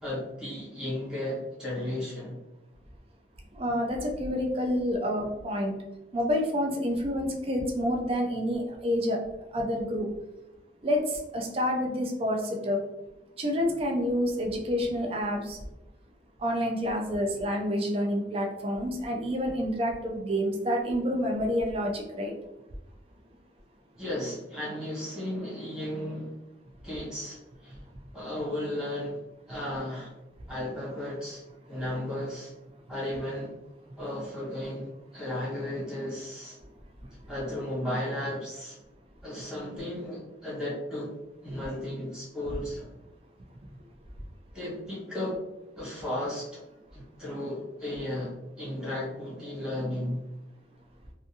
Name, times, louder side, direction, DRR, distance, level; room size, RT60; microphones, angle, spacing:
voice 1, 0.0-2.4 24.0-26.4 26.8-27.8 28.1-29.2 29.5-30.1 30.5-31.4 31.7-32.5 32.9-33.5 34.0-36.6 37.3-38.8 39.2-41.1 41.4-42.9 44.5-45.4 45.7-46.6 46.9-50.2, left 1 dB, 5° right, -7 dB, 1.1 m, -34 dB
voice 2, 3.5-5.7 6.1-9.2 9.5-10.1 10.8-12.8 13.4-15.6 16.4-22.3, equal, 30° right, 1 dB, 0.4 m, -28 dB
2.5 x 2.5 x 2.6 m, 0.95 s
head